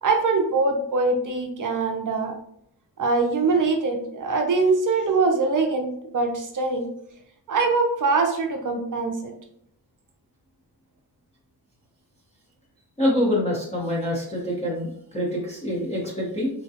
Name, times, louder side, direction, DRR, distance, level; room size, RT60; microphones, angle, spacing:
voice 1, 0.0-2.3 3.0-6.9 7.5-9.3, right 3 dB, 50° right, 3 dB, 0.5 m, -23 dB
voice 2, 13.0-16.5, left 1 dB, 15° left, -6 dB, 0.9 m, -25 dB
3.6 x 2.2 x 2.8 m, 0.70 s
wide cardioid pair, 135°, 39 cm